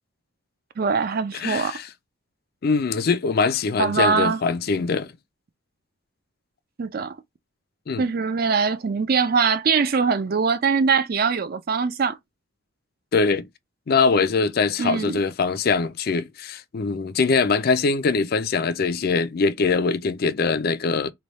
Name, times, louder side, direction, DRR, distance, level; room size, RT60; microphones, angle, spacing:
voice 1, 0.8-1.8 3.8-4.4 6.8-7.2 8.0-12.2 14.8-15.2, right 5 dB, 45° right, 0.4 m, -22 dB
voice 2, 1.3-1.9 2.6-5.1 7.9-8.0 13.1-13.5 13.9-21.1, left 4 dB, 50° left, 0.4 m, -22 dB
3.3 x 2.2 x 4.0 m
head